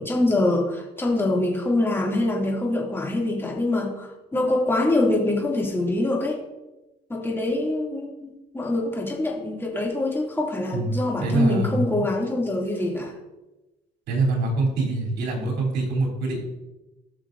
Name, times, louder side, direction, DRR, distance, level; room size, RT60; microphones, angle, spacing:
voice 1, 0.0-6.4 7.1-8.3 8.5-13.1, left 2 dB, 15° left, -2 dB, 2.6 m, -24 dB
voice 2, 10.7-11.9 14.1-16.4, right 3 dB, 80° right, -1 dB, 3.4 m, -24 dB
17.5 x 6.3 x 2.6 m, 1.0 s
cardioid pair, 110°, 17 cm